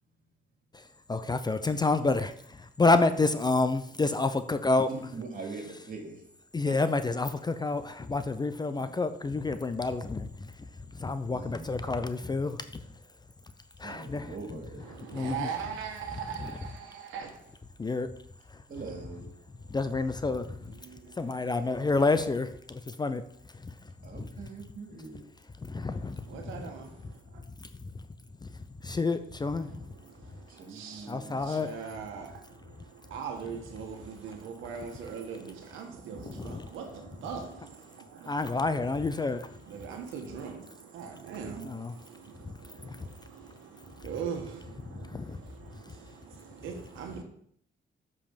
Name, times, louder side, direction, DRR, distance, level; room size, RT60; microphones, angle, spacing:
voice 1, 1.1-4.9 6.5-10.5 10.9-12.8 13.8-14.3 15.1-15.5 17.8-18.1 19.7-20.7 21.2-23.2 23.6-23.7 25.6-26.4 27.6-27.7 28.4-28.5 28.8-29.9 31.1-31.7 36.3-36.7 38.3-39.5 41.7-41.9 42.4-42.5 42.8-43.1 44.9-45.4, left 3 dB, 20° left, 0.6 m, -29 dB
voice 2, 4.9-6.2 6.6-6.8 8.7-8.9 11.3-11.7 13.8-14.8 18.7-19.3 24.0-25.2 30.5-31.5, right 3 dB, 45° right, 2.8 m, -42 dB
voice 3, 14.8-17.6 19.7-19.8 20.6-21.5 25.7-26.9 29.6-47.2, right 6 dB, 90° right, 1.4 m, -41 dB
7.9 x 5.5 x 5.1 m
cardioid pair, 90°, 20 cm